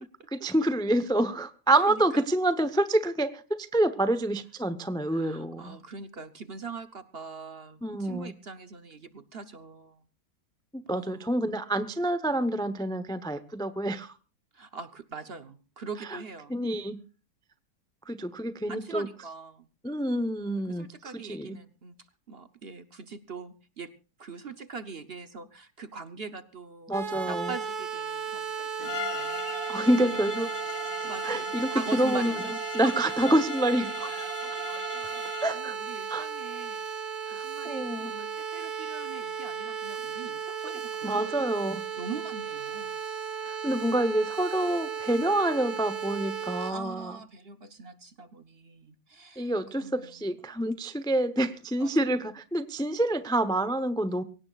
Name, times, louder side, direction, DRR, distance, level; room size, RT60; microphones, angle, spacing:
voice 1, 0.3-5.8 7.8-8.3 10.7-14.1 16.1-16.2 16.5-17.0 18.1-19.1 19.8-20.9 21.3-21.6 26.9-27.5 29.7-30.5 31.2-32.5 32.7-34.1 35.4-35.8 36.1-36.3 37.3-38.1 41.0-41.8 43.4-47.2 49.4-54.2, right 1 dB, 5° left, 12 dB, 0.6 m, -27 dB
voice 2, 1.9-2.2 5.1-10.0 10.9-11.4 14.5-16.6 18.7-19.7 20.6-21.9 22.3-23.9 24.2-29.6 30.0-30.5 31.0-32.6 32.8-32.9 33.2-33.3 34.0-36.9 37.3-41.5 42.0-43.0 43.7-44.1 46.6-49.5 49.8-50.2 51.8-51.9, right 4 dB, 45° right, 11 dB, 1.0 m, -42 dB
sound 1, 26.9-46.7, right 6 dB, 75° right, 2.4 m, -35 dB
Bowed string instrument, 28.8-35.6, left 3 dB, 60° left, 2.0 m, -38 dB
23.5 x 17.5 x 2.4 m, 0.34 s
omnidirectional pair, 1.7 m